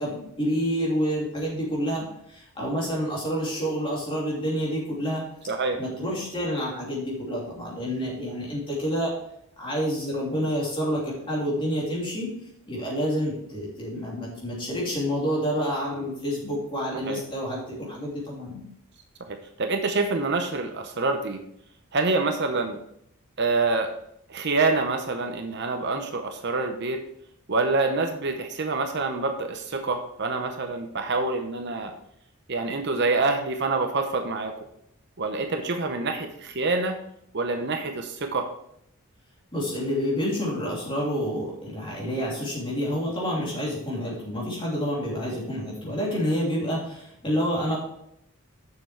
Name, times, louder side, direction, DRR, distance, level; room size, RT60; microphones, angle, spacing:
voice 1, 0.0-5.2 5.8-9.1 9.6-12.3 12.7-18.6 39.5-47.8, equal, 25° left, -5 dB, 3.1 m, -28 dB
voice 2, 5.5-5.8 17.1-17.2 19.3-21.4 21.9-22.8 23.4-23.9 24.3-27.0 27.5-31.9 32.5-34.5 35.2-37.0 37.3-38.5, right 3 dB, 50° right, 5 dB, 0.8 m, -26 dB
6.8 x 6.8 x 4.5 m, 0.74 s
head